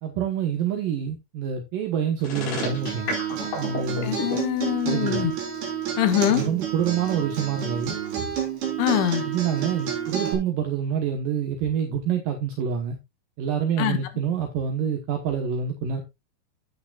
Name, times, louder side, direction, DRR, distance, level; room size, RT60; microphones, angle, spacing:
voice 1, 0.0-3.1 3.6-4.2 4.8-5.3 6.3-8.3 9.2-13.0 13.4-16.0, right 7 dB, 75° right, 2.0 m, -27 dB
sound 1, 2.2-4.4, left 3 dB, 55° left, 6.4 m, -30 dB
Acoustic guitar, 2.4-10.3, right 8 dB, 55° right, 5.8 m, -30 dB
voice 2, 4.0-5.3 6.0-6.4 8.8-9.2 13.8-14.0, left 12 dB, 75° left, 3.3 m, -23 dB
12.5 x 8.7 x 2.4 m
omnidirectional pair, 5.7 m